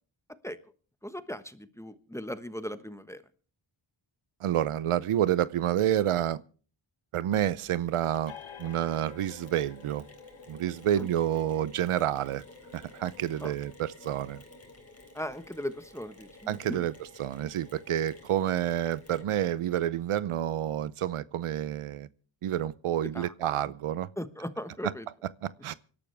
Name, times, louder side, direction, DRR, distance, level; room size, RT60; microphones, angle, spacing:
voice 1, 1.0-3.2 11.0-11.1 13.4-13.5 15.1-16.9 23.1-23.3 24.2-25.1, equal, 5° left, 1.3 m, -38 dB
voice 2, 4.4-6.4 7.1-8.3 8.6-10.1 10.5-12.4 12.7-14.4 16.5-16.9 17.2-22.1 22.4-24.1 25.4-25.7, right 11 dB, 85° right, 0.7 m, -29 dB
Mechanisms, 7.3-19.6, left 2 dB, 30° left, 4.0 m, -53 dB
sound 1, 8.3-15.5, left 8 dB, 70° left, 1.7 m, -52 dB
25.0 x 12.0 x 3.4 m
cardioid pair, 65°, 50 cm